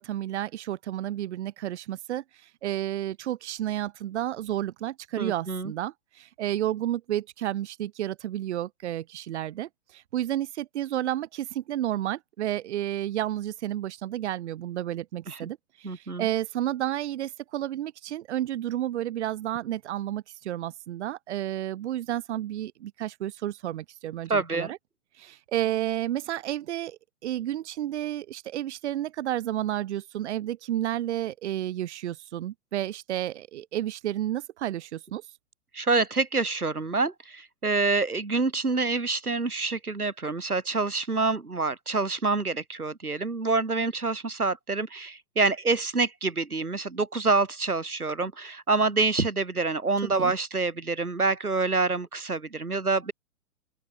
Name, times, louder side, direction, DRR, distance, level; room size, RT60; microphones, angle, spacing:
voice 1, 0.0-24.8 25.2-35.2 50.2-50.3, right 12 dB, 50° right, 2.1 m, -31 dB
voice 2, 5.2-5.7 15.3-15.5 15.8-16.3 24.3-24.7 35.7-53.1, right 3 dB, 90° right, 3.5 m, -27 dB
open air
figure-of-eight pair, 120°, 43 cm